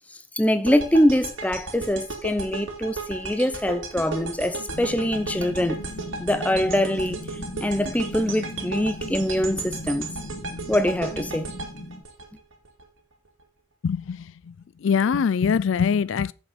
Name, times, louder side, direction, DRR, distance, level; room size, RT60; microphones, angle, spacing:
voice 1, 0.4-5.8 6.2-7.2 7.6-10.1 10.7-11.5, left 1 dB, 5° left, 0.8 m, -23 dB
sound 1, 0.6-12.8, right 3 dB, 70° right, 2.4 m, -35 dB
sound 2, 4.7-12.0, left 1 dB, 85° left, 2.8 m, -38 dB
voice 2, 13.8-14.3 14.8-16.3, left 6 dB, 65° left, 0.3 m, -22 dB
7.3 x 7.1 x 5.1 m
head